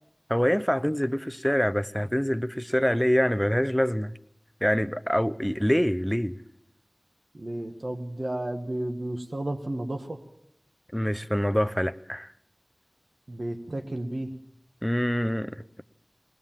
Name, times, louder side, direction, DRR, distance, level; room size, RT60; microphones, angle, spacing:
voice 1, 0.3-4.1 4.6-6.4 10.9-12.3 14.8-15.5, equal, 5° left, 0.7 m, -25 dB
voice 2, 7.3-10.2 13.3-14.3, right 1 dB, 70° right, 1.4 m, -32 dB
21.0 x 20.0 x 7.3 m
wide cardioid pair, 45°, 0 cm